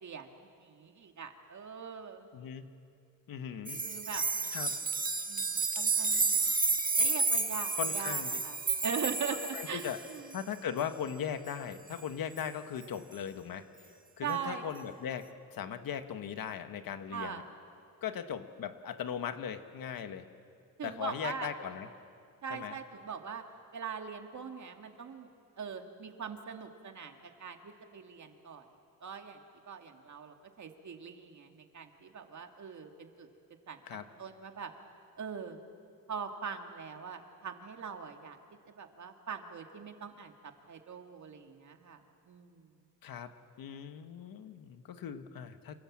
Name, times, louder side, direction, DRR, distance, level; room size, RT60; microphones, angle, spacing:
voice 1, 0.0-2.3 3.7-4.8 5.3-6.5 7.0-8.6 8.8-10.4 14.2-14.6 17.1-17.4 20.8-21.5 22.4-23.4 23.7-25.3 25.6-28.6 29.0-29.4 29.7-33.3 33.7-34.7 35.2-35.6 36.1-38.4 38.8-40.3 40.7-42.7, right 6 dB, 55° right, 4 dB, 2.3 m, -42 dB
voice 2, 2.3-2.7 3.3-3.8 4.5-4.7 7.8-8.4 9.5-10.0 10.3-13.6 14.2-17.4 18.0-20.3 20.8-21.9 22.5-22.8 33.9-34.1 43.0-43.3 43.6-45.8, left 8 dB, 80° left, 8 dB, 1.6 m, -38 dB
sound 1, 3.7-10.1 12.4-12.5, right 3 dB, 25° right, 2.0 m, -31 dB
27.5 x 26.5 x 7.5 m, 2.4 s
cardioid pair, 120°, 34 cm